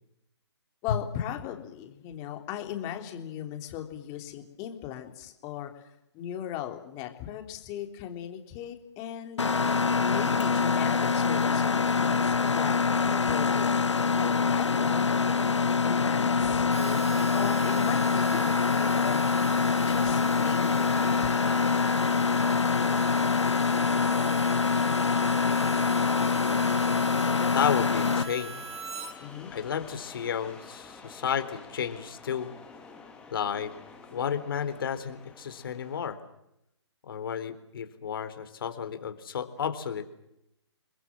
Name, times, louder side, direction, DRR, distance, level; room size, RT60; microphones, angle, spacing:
voice 1, 0.8-5.9 6.1-9.6 10.0-12.8 13.1-13.7 14.2-15.1 15.8-19.5 19.8-21.3 29.2-29.5, left 11 dB, 20° left, 5 dB, 3.6 m, -38 dB
Mechanisms, 9.4-28.2, left 5 dB, 80° left, 1.7 m, -25 dB
sound 1, 16.3-36.1, left 4 dB, 5° left, 3.4 m, -49 dB
Harmonica, 16.7-29.1, right 4 dB, 70° right, 5.2 m, -40 dB
voice 2, 27.5-28.6 29.5-32.5 33.3-33.7 34.1-36.2 37.0-40.1, left 8 dB, 50° left, 10 dB, 3.9 m, -32 dB
30.0 x 21.0 x 7.6 m, 0.83 s
hypercardioid pair, 150°, 15 cm